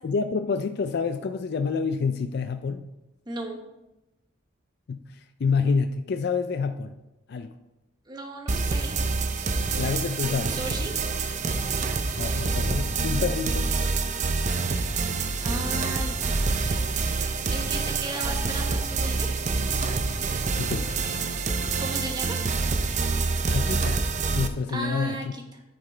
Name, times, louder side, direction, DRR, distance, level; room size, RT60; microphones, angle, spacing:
voice 1, 0.0-2.9 4.9-6.9 7.3-7.5 9.7-10.6 12.2-13.7 20.6-21.1 23.5-24.0 24.3-25.4, left 5 dB, 55° left, 8 dB, 0.4 m, -28 dB
voice 2, 3.3-3.6 8.1-9.0 10.5-10.9 15.4-17.0 17.5-19.3 21.8-22.4 24.7-25.4, right 1 dB, 20° right, 2 dB, 1.1 m, -35 dB
sound 1, 8.5-24.5, right 4 dB, 35° right, 0.6 m, -27 dB
9.4 x 6.0 x 4.4 m, 0.98 s
head